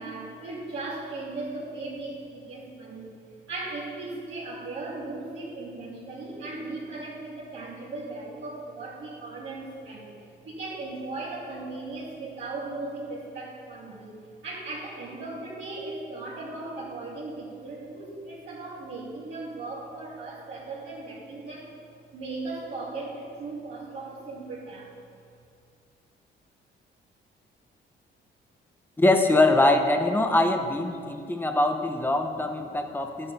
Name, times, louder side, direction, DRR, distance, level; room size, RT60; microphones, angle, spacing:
voice 1, 0.0-3.2 3.5-10.1 10.4-21.7 22.1-24.9, right 2 dB, 70° right, -10 dB, 2.6 m, -37 dB
voice 2, 29.0-33.3, left 2 dB, 10° left, 5 dB, 1.0 m, -23 dB
12.5 x 9.1 x 4.3 m, 2.4 s
cardioid pair, 90°, 20 cm